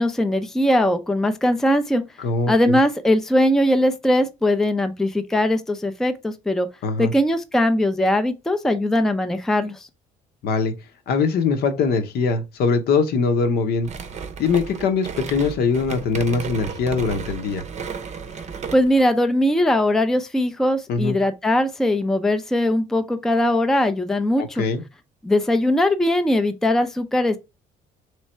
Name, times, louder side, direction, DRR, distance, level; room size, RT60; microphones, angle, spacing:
voice 1, 0.0-2.0 2.5-6.7 7.0-9.9 18.7-24.6 25.2-27.4, left 1 dB, 5° left, 0.4 m, -20 dB
voice 2, 2.2-2.8 6.8-7.1 10.4-10.7 11.1-13.9 14.4-17.6 20.9-21.2 24.4-24.8, left 4 dB, 70° left, 0.8 m, -22 dB
sound 1, 13.8-19.0, right 6 dB, 40° right, 0.6 m, -33 dB
3.3 x 3.2 x 4.3 m
cardioid pair, 110°, 17 cm